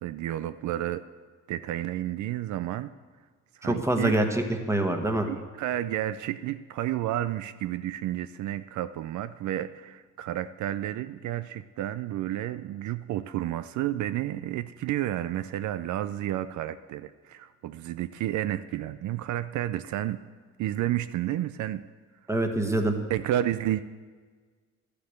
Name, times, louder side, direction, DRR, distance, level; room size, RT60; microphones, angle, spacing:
voice 1, 0.0-1.0 1.5-2.9 3.5-4.2 5.3-20.2 20.6-21.8 23.1-23.8, right 13 dB, 75° right, 13 dB, 0.4 m, -31 dB
voice 2, 3.6-5.3 22.3-22.9, right 1 dB, 10° right, 5 dB, 1.4 m, -25 dB
11.5 x 6.8 x 7.9 m, 1.5 s
cardioid pair, 90°, 30 cm